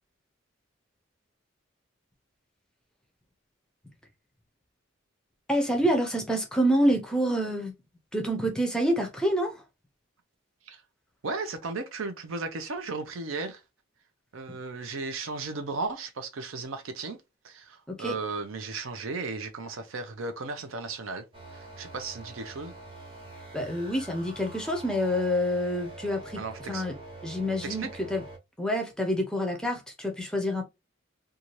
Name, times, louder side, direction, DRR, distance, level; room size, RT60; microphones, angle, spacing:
voice 1, 5.5-7.7 8.1-9.6 14.5-14.6 17.9-18.1 23.5-26.4 26.7-27.0 27.2-28.2 28.6-30.6, equal, 5° left, 0.5 m, -27 dB
voice 2, 11.2-13.6 14.3-17.2 17.4-21.2 21.5-22.7 26.4-26.8 27.6-27.9, right 3 dB, 80° right, 0.6 m, -35 dB
sound 1, 21.3-28.4, right 2 dB, 25° right, 0.8 m, -45 dB
2.7 x 2.4 x 3.0 m
head